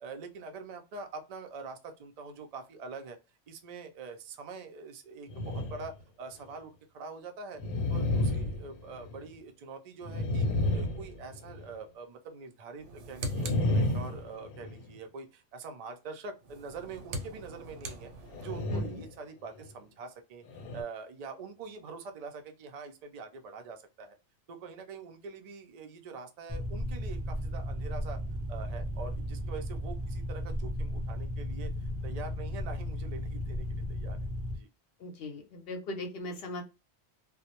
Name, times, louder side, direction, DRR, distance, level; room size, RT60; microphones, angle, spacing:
voice 1, 0.0-3.2 3.5-7.6 7.9-18.1 18.4-20.4 20.7-24.2 24.5-28.2 28.5-34.2 34.5-34.7, right 4 dB, 60° right, 0.4 m, -44 dB
sound 1, 5.3-6.0 6.5-6.6 7.6-9.4 10.0-11.8 13.3-15.0 18.3-19.1 19.6-19.7 20.5-20.8, left 1 dB, 90° left, 0.9 m, -32 dB
sound 2, 12.8-14.4 16.4-18.7, right 1 dB, 85° right, 0.9 m, -42 dB
voice 2, 18.7-19.0 35.0-36.6, left 2 dB, 65° left, 0.7 m, -39 dB
sound 3, 26.5-34.6, equal, 25° left, 0.3 m, -35 dB
2.2 x 2.0 x 2.8 m
omnidirectional pair, 1.2 m